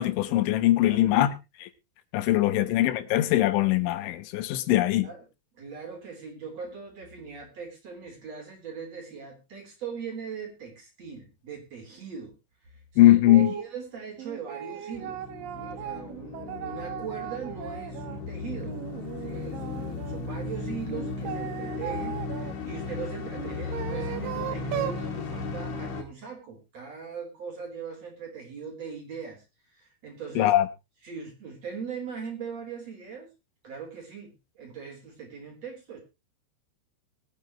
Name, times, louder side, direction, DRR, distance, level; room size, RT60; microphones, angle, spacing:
voice 1, 0.0-1.3 1.6-1.7 2.1-5.1 13.0-13.5 30.4-30.7, left 14 dB, 80° left, 3.5 m, -21 dB
voice 2, 0.8-1.2 2.4-2.6 4.8-5.2 5.5-12.4 12.9-15.2 15.5-18.9 19.2-30.5 31.0-33.3 33.6-36.0, right 6 dB, 35° right, 4.2 m, -40 dB
sound 1, 13.3-13.7 14.2-18.2 18.6-20.2 20.9-22.5 23.3-25.0, right 11 dB, 75° right, 2.1 m, -37 dB
sound 2, 14.9-26.0, left 4 dB, 50° left, 2.5 m, -36 dB
22.0 x 9.3 x 2.9 m
omnidirectional pair, 5.4 m